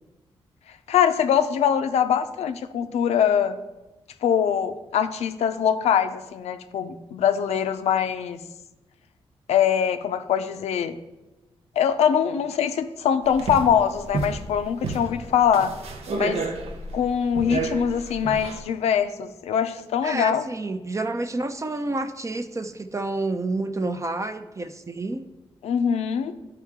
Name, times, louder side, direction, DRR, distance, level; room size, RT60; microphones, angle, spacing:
voice 1, 0.9-3.6 4.2-8.4 9.5-11.0 11.8-15.7 16.1-16.4 16.9-20.4 25.6-26.3, left 8 dB, 90° left, 9 dB, 0.5 m, -23 dB
sound 1, 13.2-18.6, right 3 dB, 80° right, 0.9 m, -31 dB
voice 2, 20.0-25.2, right 2 dB, 30° right, 8 dB, 0.6 m, -29 dB
11.0 x 4.6 x 3.6 m, 1.0 s
cardioid pair, 70°, 11 cm